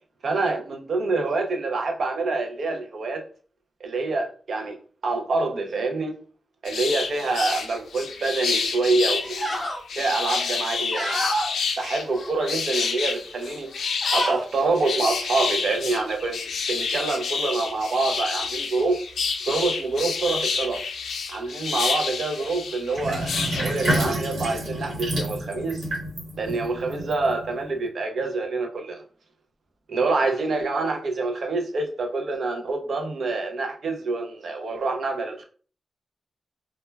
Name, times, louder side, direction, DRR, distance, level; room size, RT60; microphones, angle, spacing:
voice 1, 0.2-3.2 3.8-4.8 5.0-6.2 6.6-9.6 9.9-11.3 11.8-13.7 14.1-19.0 19.5-20.8 21.3-25.9 26.4-29.0 29.9-35.4, right 3 dB, 55° right, 0.4 m, -26 dB
sound 1, 6.6-24.1, left 5 dB, 90° left, 0.3 m, -29 dB
sound 2, 8.4-8.6 9.1-9.8 10.2-11.5 12.0-12.9 13.3-13.5 13.8-14.4, equal, 15° left, 0.5 m, -30 dB
Sink (filling or washing), 22.9-27.7, right 1 dB, 85° right, 1.1 m, -29 dB
2.1 x 2.0 x 3.2 m
wide cardioid pair, 180°, 0 cm